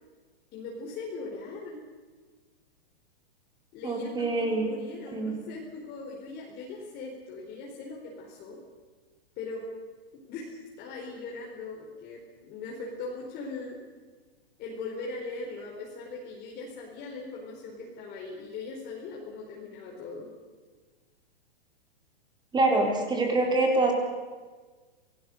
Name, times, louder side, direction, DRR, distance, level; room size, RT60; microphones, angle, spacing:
voice 1, 0.5-1.8 3.7-8.6 9.4-9.7 10.1-13.8 14.6-20.3, left 3 dB, 30° left, -2 dB, 4.6 m, -40 dB
voice 2, 3.8-4.7 5.1-5.3 22.5-23.9, right 2 dB, 15° right, 2 dB, 4.2 m, -25 dB
27.5 x 19.0 x 6.6 m, 1.4 s
hypercardioid pair, 130°, 31 cm